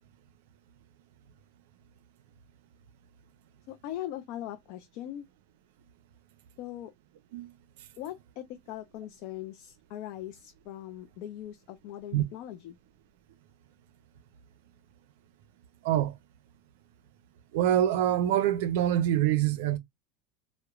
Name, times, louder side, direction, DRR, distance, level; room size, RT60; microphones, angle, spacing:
voice 1, 3.7-5.3 6.6-6.9 8.0-12.8, left 12 dB, 50° left, 0.4 m, -40 dB
voice 2, 17.5-19.8, right 11 dB, 75° right, 0.4 m, -25 dB
2.9 x 2.0 x 2.3 m
supercardioid pair, 155°, 0 cm